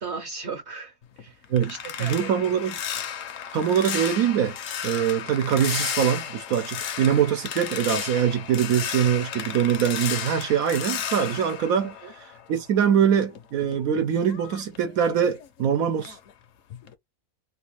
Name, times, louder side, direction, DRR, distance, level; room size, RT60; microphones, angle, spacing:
voice 1, 0.0-2.6 12.0-12.1, right 5 dB, 55° right, 1.1 m, -37 dB
sound 1, 1.0-12.7 13.0-15.7 16.0-16.3 16.7-16.9, left 9 dB, 70° left, 1.0 m, -34 dB
voice 2, 2.0-2.8 3.5-4.6 4.8-16.2, right 8 dB, 80° right, 1.2 m, -23 dB
3.1 x 2.5 x 3.1 m
omnidirectional pair, 1.5 m